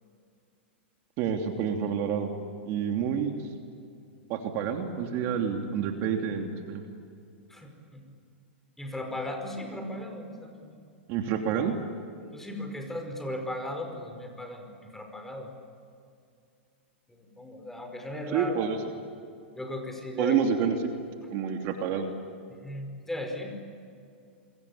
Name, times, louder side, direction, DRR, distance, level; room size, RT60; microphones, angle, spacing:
voice 1, 1.2-2.4 2.6-3.3 4.3-6.8 11.1-11.7 18.3-18.8 20.2-20.9 21.3-22.1, right 7 dB, 45° right, 3 dB, 3.0 m, -28 dB
voice 2, 7.5-8.0 8.8-10.8 12.3-15.5 17.2-18.6 19.6-20.4 22.6-23.6, left 1 dB, 5° left, 4 dB, 5.2 m, -37 dB
28.5 x 23.5 x 8.7 m, 2.4 s
hypercardioid pair, 130°, 6 cm